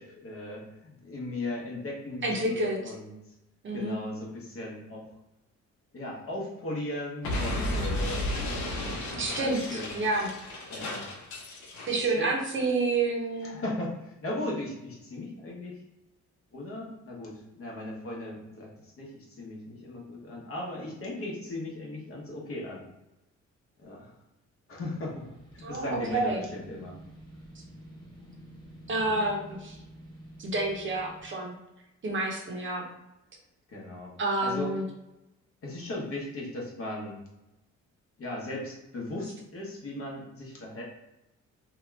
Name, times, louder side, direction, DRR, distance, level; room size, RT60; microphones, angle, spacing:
voice 1, 0.0-3.1 3.7-5.1 5.9-8.3 9.4-9.9 10.7-11.0 12.2-12.3 13.4-15.8 16.5-22.8 23.8-24.1 24.7-25.2 25.5-26.9 28.9-29.2 33.7-34.1 34.4-34.7 35.6-37.2 38.2-40.8, left 1 dB, 45° left, -2 dB, 0.9 m, -37 dB
voice 2, 2.2-2.9 3.6-4.0 9.1-10.3 11.9-13.5 25.6-26.4 28.9-29.8 30.4-31.5 32.0-32.8 34.2-34.9, right 2 dB, 40° right, 0 dB, 0.7 m, -29 dB
Explosion, 7.2-12.0, left 1 dB, 75° left, 0.8 m, -33 dB
sound 1, 25.0-31.3, right 1 dB, 15° left, 0.9 m, -50 dB
2.8 x 2.3 x 3.1 m, 0.94 s
cardioid pair, 90°, 30 cm